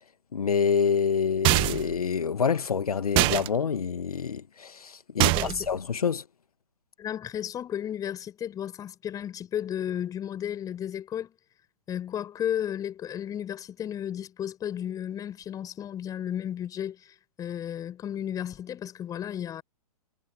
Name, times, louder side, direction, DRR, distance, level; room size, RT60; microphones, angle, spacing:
voice 1, 0.3-5.3 5.7-6.2, left 6 dB, 65° left, 2.2 m, -27 dB
sound 1, 1.4-2.0 3.2-3.5 5.2-5.7, right 24 dB, 25° right, 1.4 m, -23 dB
voice 2, 5.2-5.7 7.0-11.3 11.9-19.6, left 10 dB, 15° left, 7.7 m, -33 dB
figure-of-eight pair, 120°, 20 cm